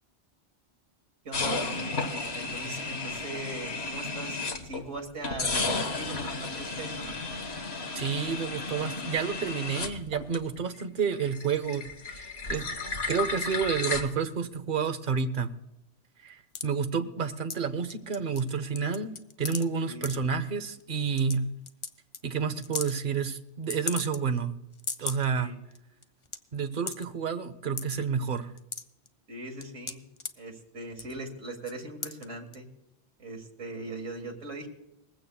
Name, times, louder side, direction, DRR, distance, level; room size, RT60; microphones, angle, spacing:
voice 1, 1.2-1.8 2.1-7.2 19.8-20.1 25.4-25.6 29.3-30.1 30.4-32.7 33.2-34.7, right 2 dB, 85° right, 3 dB, 2.2 m, -40 dB
sound 1, 1.3-4.9 5.2-10.8 11.1-14.0, left 3 dB, 60° left, 1.6 m, -33 dB
voice 2, 7.9-12.7 13.1-15.5 16.2-21.5 22.2-24.6 25.0-25.5 26.5-28.5, right 6 dB, 45° right, 10 dB, 0.9 m, -30 dB
sound 2, 16.5-16.7 17.5-17.6 17.9-18.5 18.8-19.6 20.0-20.2 20.8-20.9 21.2-21.3 21.7-21.9 22.1-22.2 22.6-22.9 23.7-24.4 24.7-25.3 25.7-25.8 26.0-26.4 26.9-27.1 27.8-28.0 28.4-29.1 29.6-30.3 30.9-31.2 31.6-31.7 32.0-32.2 32.5-32.6, left 5 dB, 40° left, 0.4 m, -35 dB
20.5 x 15.5 x 2.3 m, 0.87 s
omnidirectional pair, 1.2 m